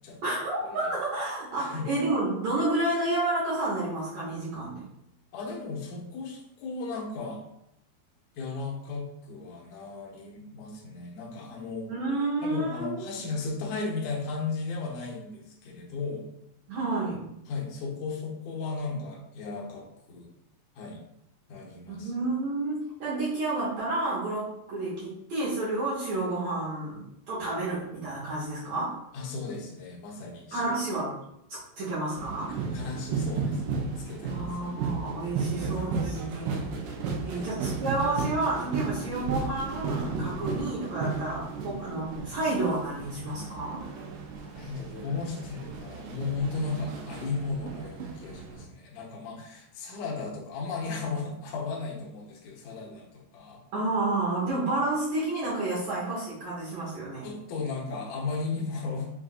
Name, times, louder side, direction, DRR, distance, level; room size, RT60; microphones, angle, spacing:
voice 1, 0.2-4.8 11.9-13.0 16.7-17.2 21.9-29.0 30.5-31.1 31.5-32.5 34.2-36.7 37.2-43.9 53.7-57.3, right 2 dB, 70° right, -8 dB, 1.7 m, -30 dB
voice 2, 1.6-1.9 5.3-7.4 8.4-11.9 12.4-16.3 17.5-20.3 20.8-21.0 21.5-22.1 29.1-30.8 32.5-34.5 37.3-37.5 44.4-53.6 57.2-59.1, left 4 dB, 75° left, -3 dB, 1.8 m, -35 dB
sound 1, 32.2-48.6, right 4 dB, 90° right, 2.6 m, -34 dB
6.3 x 2.6 x 2.4 m, 0.80 s
omnidirectional pair, 4.5 m